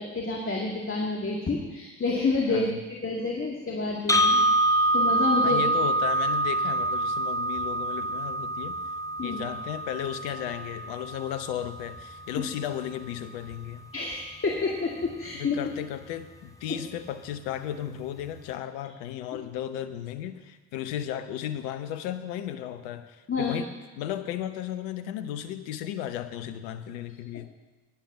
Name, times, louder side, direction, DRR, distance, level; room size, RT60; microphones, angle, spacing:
voice 1, 0.0-5.6 9.2-9.4 13.9-15.6 23.3-23.5, left 3 dB, 30° left, -1 dB, 2.1 m, -29 dB
sound 1, 4.1-12.1, right 1 dB, 10° left, 1.0 m, -26 dB
voice 2, 5.4-8.8 9.2-13.9 15.4-23.7 23.9-27.5, left 11 dB, 70° left, 10 dB, 1.0 m, -35 dB
11.5 x 10.5 x 6.1 m, 1.2 s
hypercardioid pair, 50°, 41 cm